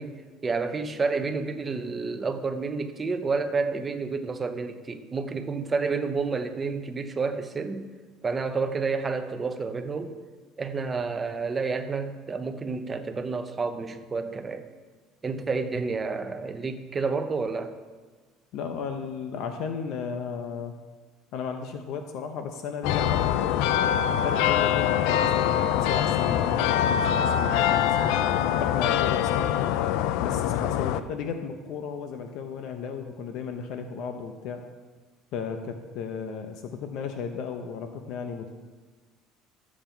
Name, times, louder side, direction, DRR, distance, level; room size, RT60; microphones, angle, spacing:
voice 1, 0.0-7.9 8.2-10.2 10.6-14.6 15.2-17.7, right 4 dB, 20° right, 8 dB, 0.7 m, -30 dB
voice 2, 18.5-20.8 21.3-23.7 24.2-28.2 28.6-29.6 30.2-34.7 35.3-38.5, left 6 dB, 60° left, 6 dB, 0.8 m, -34 dB
sound 1, 22.8-31.0, left 10 dB, 75° left, 0.4 m, -24 dB
12.5 x 7.3 x 4.5 m, 1.4 s
cardioid pair, 150°, 0 cm